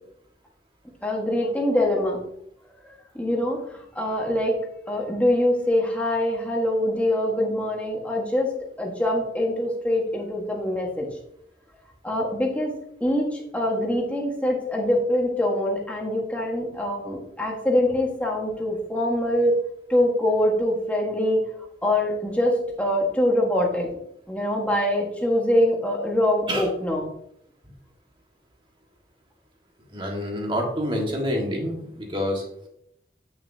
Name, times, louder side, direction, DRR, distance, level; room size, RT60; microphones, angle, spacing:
voice 1, 1.0-2.2 2.8-4.6 4.9-8.5 8.8-11.1 12.0-19.6 19.9-21.4 21.8-23.9 24.3-27.1, left 1 dB, 10° left, -1 dB, 1.4 m, -24 dB
voice 2, 29.9-32.4, equal, 30° right, 0 dB, 1.6 m, -27 dB
8.7 x 6.3 x 2.7 m, 0.73 s
head